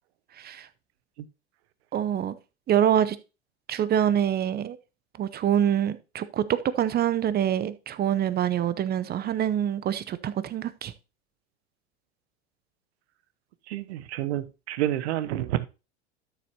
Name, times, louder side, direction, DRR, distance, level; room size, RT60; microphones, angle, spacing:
voice 1, 0.4-0.7 1.9-2.4 2.7-3.2 3.7-4.8 5.2-10.9, right 10 dB, 30° right, 0.7 m, -25 dB
voice 2, 13.7-15.7, right 13 dB, 70° right, 0.9 m, -29 dB
12.5 x 6.8 x 2.9 m
hypercardioid pair, 90°, 34 cm